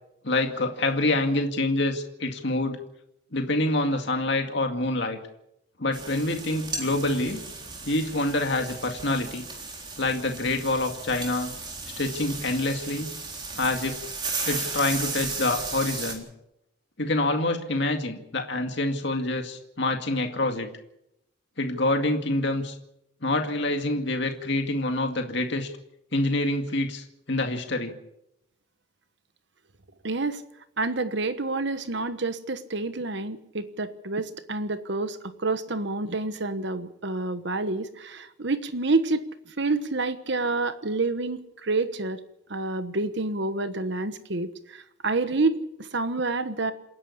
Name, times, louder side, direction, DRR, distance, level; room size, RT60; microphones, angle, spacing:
voice 1, 0.2-2.8 3.3-5.2 5.8-7.4 7.8-9.4 10.0-11.5 12.0-13.1 13.6-14.0 14.5-16.3 17.0-20.7 21.6-22.8 23.2-25.7 26.1-27.9, left 2 dB, 60° left, 4 dB, 2.2 m, -26 dB
sound 1, 5.9-16.1, right 3 dB, 25° right, 3.8 m, -35 dB
voice 2, 30.0-30.4 30.8-39.2 39.6-42.2 42.5-46.7, right 3 dB, 60° right, 11 dB, 1.2 m, -28 dB
28.0 x 11.0 x 8.4 m, 0.81 s
head